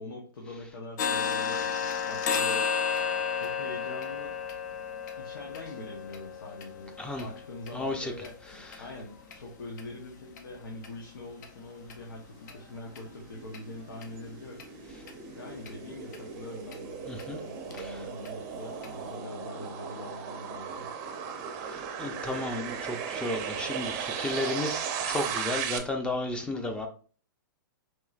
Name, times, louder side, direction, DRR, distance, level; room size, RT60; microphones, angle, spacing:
voice 1, 0.0-2.7 3.3-4.4 5.2-8.4 8.8-14.6 15.3-20.9, left 2 dB, 85° left, -1 dB, 1.0 m, -43 dB
sound 1, 1.0-8.8 9.2-9.4 9.8-9.9 10.4-10.5 10.8-10.9 11.4-11.5 11.9-12.0 12.5-12.6 13.0-13.1 13.5-13.6 14.0-14.1 14.6-14.7 15.1-15.2 15.7-15.8 16.1-16.2 16.7-16.8 17.2-17.3 17.7-17.8 18.3-18.4 18.8-18.9, left 6 dB, 55° left, 0.7 m, -32 dB
voice 2, 7.7-8.1 17.1-17.4 17.8-18.0 21.7-26.9, left 2 dB, 10° left, 5 dB, 0.5 m, -33 dB
sound 2, 12.6-25.8, right 7 dB, 35° right, 0.6 m, -37 dB
4.7 x 3.1 x 2.4 m, 0.41 s
hypercardioid pair, 135°, 11 cm